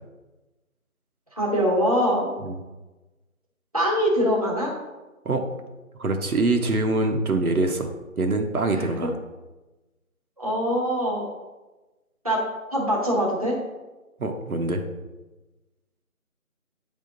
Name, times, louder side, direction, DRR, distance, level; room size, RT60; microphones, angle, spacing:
voice 1, 1.4-2.3 3.7-4.7 8.7-8.9 10.4-11.3 12.2-12.4 12.7-13.6, equal, 25° right, -4 dB, 0.8 m, -23 dB
voice 2, 6.0-7.9 8.2-9.1 14.2-14.8, right 2 dB, 85° right, 4 dB, 1.0 m, -24 dB
9.1 x 3.6 x 3.9 m, 1.1 s
figure-of-eight pair, 170°, 42 cm